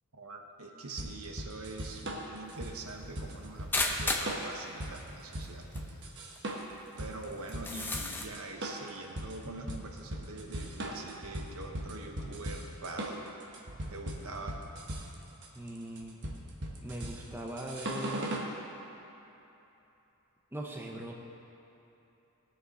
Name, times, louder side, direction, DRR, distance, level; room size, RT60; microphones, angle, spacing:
voice 1, 0.1-5.7 6.1-6.2 7.0-13.3 13.9-14.6, right 2 dB, 75° right, 2 dB, 1.1 m, -44 dB
sound 1, 1.0-18.5, right 1 dB, 50° right, 1.1 m, -39 dB
sound 2, 3.7-4.4 5.4-5.5 5.7-5.8 6.4-6.5 7.5-8.3, left 2 dB, 10° left, 0.6 m, -32 dB
voice 2, 15.5-16.2 16.8-18.4 20.5-21.1, right 1 dB, 10° right, -1 dB, 0.9 m, -40 dB
17.5 x 6.8 x 4.2 m, 2.9 s
head